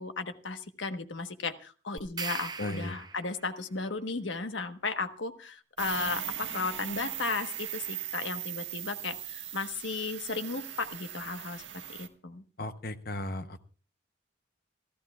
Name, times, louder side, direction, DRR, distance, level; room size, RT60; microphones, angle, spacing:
voice 1, 0.0-11.6 11.9-12.4, left 4 dB, 75° left, 8 dB, 1.2 m, -35 dB
sound 1, 2.0-3.6, right 5 dB, 20° right, 0.7 m, -39 dB
voice 2, 2.6-2.9 12.6-13.6, left 1 dB, 50° left, 9 dB, 0.9 m, -36 dB
sound 2, 5.8-12.1, right 11 dB, 65° right, 1.6 m, -39 dB
26.5 x 14.0 x 2.4 m, 0.37 s
head